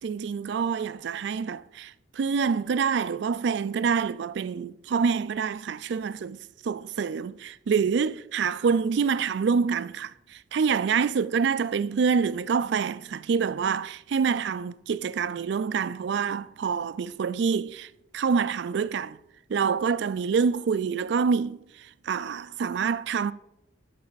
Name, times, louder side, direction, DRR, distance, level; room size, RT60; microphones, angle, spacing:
voice 1, 0.0-19.2 19.5-23.3, right 6 dB, 60° right, 0.3 m, -26 dB
12.0 x 5.5 x 4.0 m
head